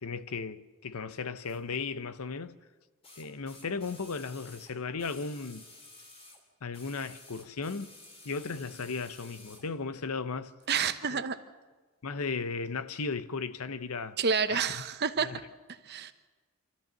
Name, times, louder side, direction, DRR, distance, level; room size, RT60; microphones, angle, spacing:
voice 1, 0.0-2.5 3.2-5.7 6.6-7.9 8.2-10.5 11.1-11.2 12.0-14.2 14.5-14.6 15.2-15.4, left 4 dB, 80° left, 0.8 m, -36 dB
sound 1, 1.4-1.6 3.0-6.4 6.7-9.7 10.6-10.7, left 2 dB, 25° left, 2.9 m, -53 dB
voice 2, 10.7-11.4 14.2-15.4 15.7-16.1, right 6 dB, 50° right, 0.9 m, -29 dB
26.5 x 13.5 x 7.5 m
head